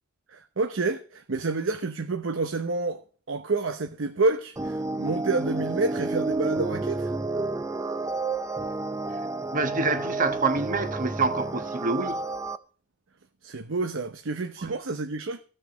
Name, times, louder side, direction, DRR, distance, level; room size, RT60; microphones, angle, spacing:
voice 1, 0.3-3.0 3.3-7.1 13.4-15.4, right 3 dB, 70° right, 0.8 m, -28 dB
sound 1, 4.6-12.6, right 3 dB, 15° right, 0.5 m, -30 dB
voice 2, 9.5-12.2 14.6-14.7, right 3 dB, 40° right, 1.3 m, -27 dB
14.5 x 6.6 x 6.1 m
head